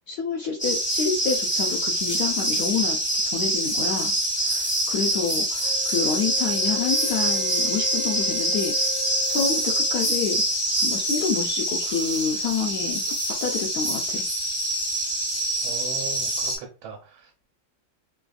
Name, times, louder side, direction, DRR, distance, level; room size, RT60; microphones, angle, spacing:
voice 1, 0.1-3.0 3.3-8.8 9.3-10.4 10.8-13.0 13.4-14.2, left 6 dB, 75° left, 0.9 m, -28 dB
sound 1, 0.6-16.6, right 1 dB, 15° left, 0.4 m, -25 dB
Wind instrument woodwind instrument, 5.6-10.5, left 18 dB, 60° left, 1.2 m, -37 dB
voice 2, 15.6-17.5, right 6 dB, 85° right, 1.4 m, -39 dB
3.3 x 2.3 x 2.3 m
omnidirectional pair, 2.1 m